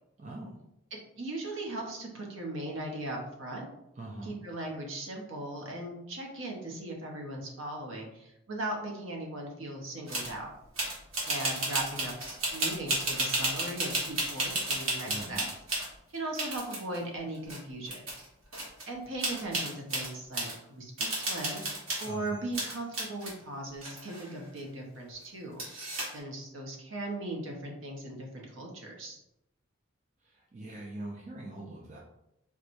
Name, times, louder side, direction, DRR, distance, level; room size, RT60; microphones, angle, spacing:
voice 1, 0.2-0.6 4.0-4.3 15.0-15.4 22.0-22.4 30.2-32.0, right 2 dB, 35° right, -2 dB, 0.4 m, -42 dB
voice 2, 0.9-3.7 4.2-10.5 11.3-15.4 16.1-18.0 18.9-25.6 26.1-29.2, right 1 dB, 70° right, 0 dB, 0.8 m, -38 dB
sound 1, 10.1-10.3 10.8-15.9 16.3-17.0 17.5-17.6 17.9-18.3 18.5-18.8 19.2-20.5 21.0-22.2 22.5-23.3 23.8-24.6 25.6-26.2, right 2 dB, 85° right, 1.3 m, -33 dB
4.4 x 2.2 x 2.6 m, 0.83 s
head